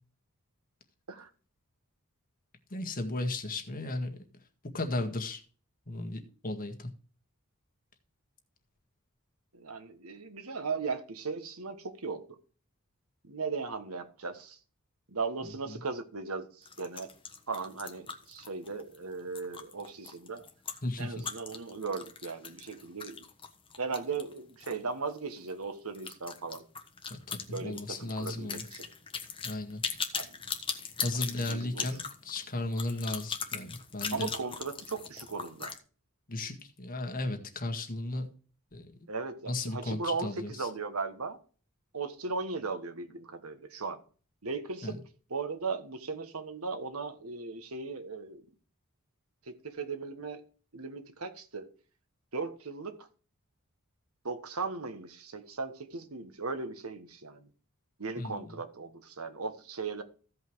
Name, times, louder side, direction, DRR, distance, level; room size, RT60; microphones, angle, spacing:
voice 1, 2.7-4.2 4.7-5.4 5.9-6.9 15.7-15.8 20.8-21.1 27.1-28.6 29.4-29.8 31.0-34.3 36.3-38.3 38.7-38.9 39.5-40.7 44.8-44.9 58.2-58.5, left 2 dB, 40° left, 1.8 m, -35 dB
voice 2, 9.5-12.2 13.2-14.6 15.1-17.1 17.5-20.4 21.0-23.2 23.8-26.6 27.5-28.9 30.1-30.3 31.2-31.9 34.1-35.7 39.1-41.4 41.9-44.0 44.4-45.0 45.3-48.4 49.5-50.4 50.7-51.7 52.3-53.1 54.2-57.5 58.0-60.0, right 4 dB, 90° right, 1.5 m, -37 dB
sound 1, 16.6-24.8 25.1-25.2 25.5-25.6 25.9-35.8, left 6 dB, 25° left, 1.3 m, -39 dB
15.5 x 5.5 x 4.7 m
head